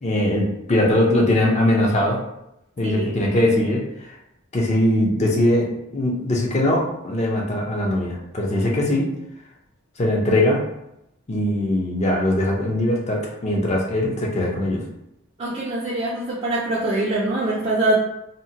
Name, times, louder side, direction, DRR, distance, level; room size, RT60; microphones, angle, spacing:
voice 1, 0.0-2.2 2.8-4.1 4.5-9.1 10.0-10.6 11.3-14.8, left 1 dB, 30° left, -1 dB, 0.5 m, -21 dB
voice 2, 15.4-18.0, right 2 dB, 30° right, -7 dB, 0.4 m, -23 dB
2.7 x 2.1 x 2.7 m, 0.85 s
head